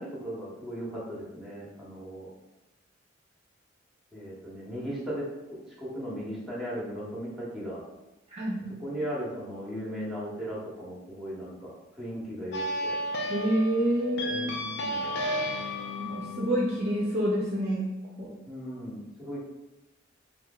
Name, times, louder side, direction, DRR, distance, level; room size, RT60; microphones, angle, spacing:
voice 1, 0.0-2.3 4.1-5.3 5.8-7.8 8.8-13.0 14.3-15.1 18.5-19.4, equal, ahead, -7 dB, 0.8 m, -37 dB
voice 2, 8.3-8.6 13.3-14.5 16.0-17.9 18.2-18.3, right 1 dB, 35° right, -5 dB, 0.5 m, -28 dB
sound 1, 12.5-17.6, equal, 60° left, 0.4 m, -33 dB
3.1 x 2.6 x 2.2 m, 0.98 s
head